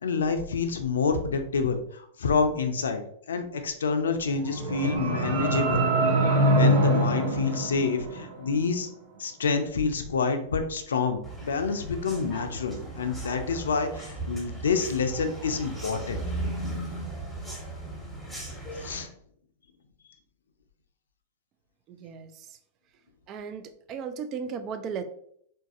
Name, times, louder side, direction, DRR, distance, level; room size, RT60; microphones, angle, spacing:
voice 1, 0.0-5.8 6.5-8.9 9.2-16.2 18.8-19.1, left 5 dB, 80° left, 7 dB, 0.4 m, -28 dB
sound 1, 4.3-8.5, right 1 dB, 70° right, 0.7 m, -24 dB
sound 2, 11.2-19.0, right 2 dB, ahead, 1.2 m, -37 dB
voice 2, 21.9-22.6 23.3-25.0, right 6 dB, 40° right, 10 dB, 0.3 m, -36 dB
3.8 x 2.5 x 2.4 m, 0.68 s
hypercardioid pair, 105°, 0 cm